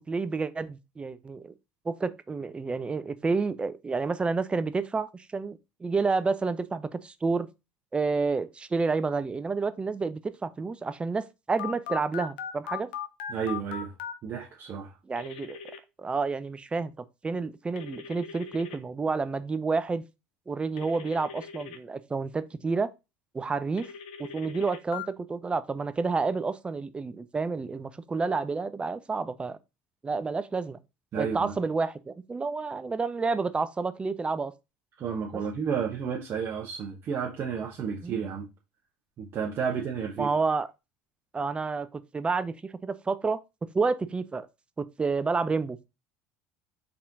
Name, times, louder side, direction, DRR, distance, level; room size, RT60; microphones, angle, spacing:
voice 1, 0.1-1.5 1.9-7.5 7.9-12.9 15.1-15.6 16.0-20.0 20.5-22.9 23.3-23.9 24.2-29.6 30.0-30.8 31.2-34.5 38.0-38.2 40.2-40.7 41.3-43.4 43.7-44.5 44.8-45.8, right 4 dB, 20° right, 0.4 m, -29 dB
Telephone, 11.6-14.1 15.1-15.8 17.8-18.8 20.8-21.8 23.8-25.1, left 8 dB, 80° left, 0.6 m, -39 dB
voice 2, 13.3-13.9 14.2-15.0 31.1-31.5 35.0-38.5 39.2-40.3, right 6 dB, 45° right, 0.9 m, -31 dB
4.2 x 3.7 x 2.6 m
hypercardioid pair, 80°, 5 cm